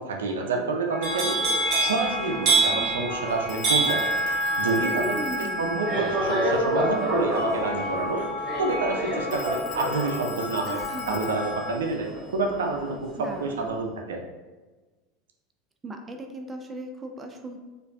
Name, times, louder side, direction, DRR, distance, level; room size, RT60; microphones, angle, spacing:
voice 1, 0.0-1.4 1.8-4.1 4.6-8.2 8.6-10.8 11.1-13.1 13.4-14.2, right 3 dB, 85° right, 2 dB, 0.4 m, -28 dB
sound 1, 0.9-11.7, left 1 dB, 90° left, 0.7 m, -32 dB
sound 2, 1.0-13.0 13.3-13.7, right 2 dB, 50° right, 1.5 m, -28 dB
Telephone, 3.5-7.2 9.3-13.0, left 8 dB, 50° left, 0.5 m, -46 dB
voice 2, 4.9-5.8 10.7-11.2 13.2-13.6 15.8-17.6, right 1 dB, 20° right, 4 dB, 0.5 m, -37 dB
4.4 x 2.6 x 2.4 m, 1.2 s
hypercardioid pair, 95°, 0 cm